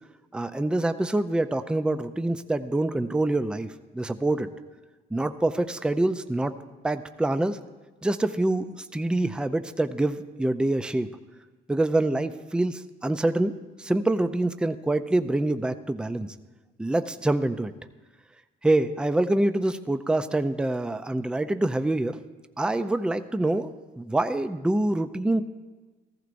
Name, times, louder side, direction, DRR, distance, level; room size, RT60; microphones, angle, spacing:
voice 1, 0.3-4.5 5.1-6.5 6.8-7.6 8.0-11.1 11.7-13.5 13.8-16.3 16.8-17.7 18.6-22.2 22.6-23.7 24.0-25.4, right 2 dB, 5° right, 10 dB, 0.4 m, -25 dB
14.5 x 14.5 x 2.6 m, 1.3 s
cardioid pair, 90°, 20 cm